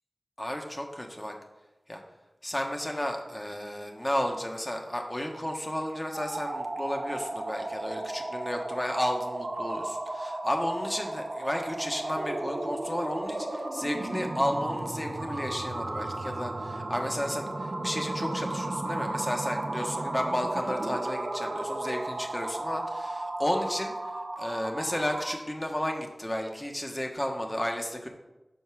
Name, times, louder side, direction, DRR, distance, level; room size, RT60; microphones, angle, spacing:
voice 1, 0.4-1.3 1.9-2.0 2.4-23.9 24.4-28.1, equal, 20° left, 2 dB, 1.2 m, -32 dB
sound 1, 6.1-25.5, right 2 dB, 65° right, 0.9 m, -34 dB
5.4 x 4.5 x 6.1 m, 1.0 s
cardioid pair, 40°, 0 cm